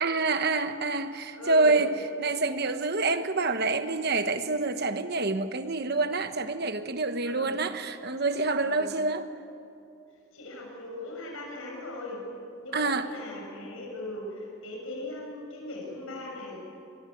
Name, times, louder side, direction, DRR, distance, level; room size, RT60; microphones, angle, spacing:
voice 1, 0.0-9.3 12.7-13.1, right 3 dB, 45° right, 1.2 m, -27 dB
voice 2, 1.4-1.8 7.2-7.5 8.6-8.9 10.3-12.2 12.6-16.6, left 2 dB, 70° left, 6.6 m, -39 dB
23.5 x 22.5 x 9.3 m
head